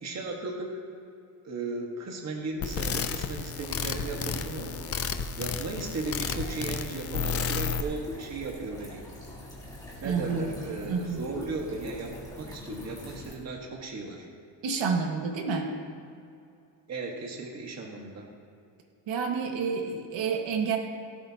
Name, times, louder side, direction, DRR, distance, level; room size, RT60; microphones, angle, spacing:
voice 1, 0.0-0.8 1.4-4.7 5.4-9.0 10.0-12.1 12.4-14.3 16.9-18.3, right 3 dB, 35° right, 0 dB, 1.6 m, -36 dB
sound 1, 2.6-7.8, left 6 dB, 35° left, 0.5 m, -32 dB
sound 2, 3.5-13.3, left 1 dB, 10° left, 2.9 m, -43 dB
voice 2, 10.0-10.5 10.9-11.3 14.6-15.7 19.1-20.8, right 5 dB, 80° right, 2 dB, 1.8 m, -29 dB
17.5 x 13.5 x 2.9 m, 2.5 s
cardioid pair, 165°, 44 cm